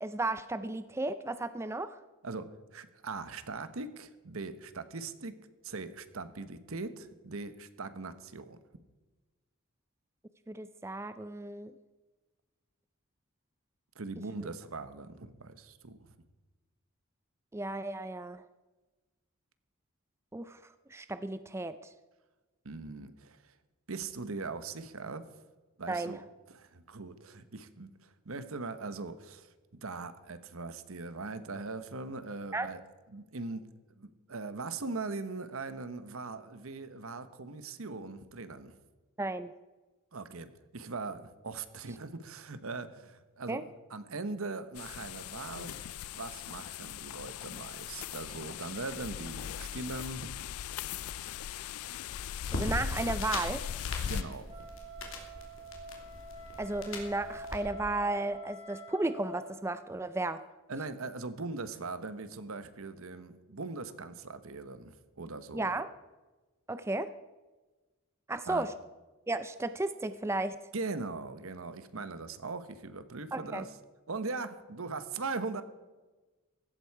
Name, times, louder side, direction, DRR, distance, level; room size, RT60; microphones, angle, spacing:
voice 1, 0.0-2.0 10.5-11.7 17.5-18.4 20.3-20.6 20.9-21.8 25.9-26.1 32.5-32.7 39.2-39.5 43.5-43.6 52.5-53.6 56.6-60.4 65.5-65.9 66.7-67.1 68.3-68.7 69.3-70.6 73.3-73.6, right 2 dB, 10° right, 12 dB, 0.4 m, -34 dB
voice 2, 2.2-8.6 13.9-16.1 22.6-23.5 23.9-25.3 25.8-26.2 26.5-32.8 33.1-38.8 40.1-50.3 54.0-54.6 60.7-65.7 68.5-68.7 70.7-73.7 74.1-75.6, right 3 dB, 75° right, 12 dB, 1.1 m, -40 dB
sound 1, 44.8-54.2, left 9 dB, 85° left, 0.4 m, -39 dB
sound 2, 52.4-57.6, left 2 dB, 65° left, 2.9 m, -41 dB
Wind instrument woodwind instrument, 54.5-59.5, equal, 30° right, 3.3 m, -47 dB
16.0 x 12.5 x 4.7 m, 1.2 s
head